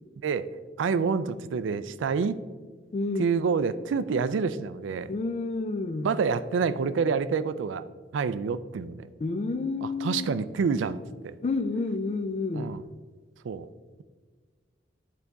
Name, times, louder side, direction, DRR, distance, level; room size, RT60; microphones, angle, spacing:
voice 1, 0.8-2.4 3.2-5.1 6.0-7.8 8.1-9.1 9.8-11.4 12.5-12.8 13.4-13.7, right 5 dB, 80° right, 0.4 m, -27 dB
voice 2, 2.9-3.4 5.1-6.1 9.2-10.3 11.4-12.8, left 3 dB, 35° left, 0.3 m, -30 dB
10.5 x 4.1 x 3.5 m
head